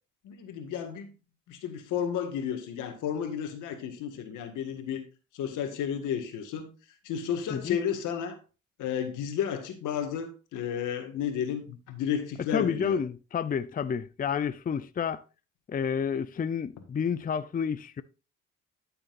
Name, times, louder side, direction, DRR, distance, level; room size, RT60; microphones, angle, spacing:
voice 1, 0.2-1.1 1.5-5.0 5.3-6.7 7.0-8.4 8.8-13.0, left 8 dB, 90° left, 1.8 m, -32 dB
voice 2, 12.5-15.2 15.7-18.0, left 7 dB, 30° left, 0.5 m, -30 dB
13.0 x 6.8 x 2.5 m
cardioid pair, 90°, 30 cm